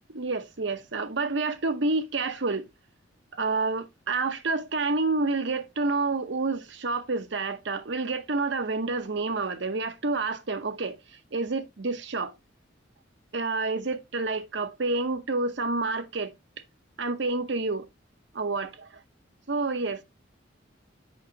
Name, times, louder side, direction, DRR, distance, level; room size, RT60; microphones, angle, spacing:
voice 1, 0.1-2.7 3.3-11.0 11.3-12.3 13.3-16.3 17.0-17.9 18.3-19.0 19.5-20.0, right 3 dB, 65° right, 0.9 m, -29 dB
8.2 x 5.3 x 2.8 m
head